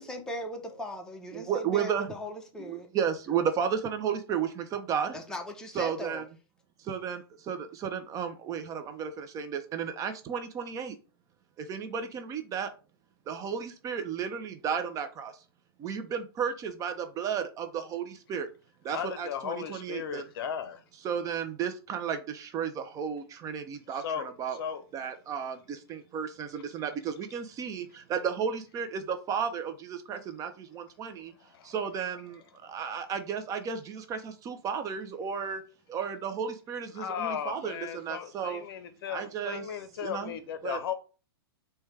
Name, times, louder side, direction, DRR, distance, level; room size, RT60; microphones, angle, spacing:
voice 1, 0.0-2.9 5.1-6.2, equal, 5° left, 0.7 m, -38 dB
voice 2, 1.3-2.1 2.6-5.2 5.7-6.2 6.8-11.0 11.6-12.7 13.3-15.3 15.8-18.5 18.8-20.3 21.0-24.6 24.9-31.3 31.6-35.6 35.9-38.6 39.1-39.7 40.0-40.4 40.6-40.8, right 7 dB, 25° right, 0.4 m, -33 dB
voice 3, 18.9-20.8 24.0-24.3 24.6-24.8 31.5-31.7 36.9-40.9, left 8 dB, 65° left, 0.6 m, -36 dB
4.5 x 2.2 x 3.2 m
hypercardioid pair, 120°, 13 cm